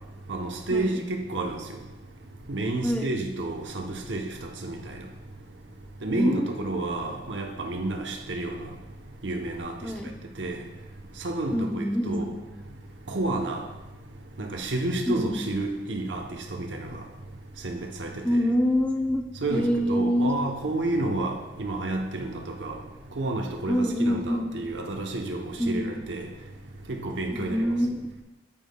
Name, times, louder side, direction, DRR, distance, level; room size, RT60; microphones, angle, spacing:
voice 1, 0.3-1.6 2.5-4.3 4.6-4.9 6.0-8.6 9.2-9.7 10.4-10.6 11.2-12.3 13.1-13.6 14.4-17.0 17.6-18.4 19.4-22.8 23.2-26.3 26.9-27.7, right 2 dB, 80° right, 0.9 m, -30 dB
voice 2, 6.1-6.7 9.8-10.1 11.5-12.2 15.1-15.5 18.2-19.2 19.5-20.3 23.7-24.5 25.6-25.9 27.3-28.2, equal, 10° left, 0.6 m, -25 dB
9.3 x 8.6 x 2.3 m
head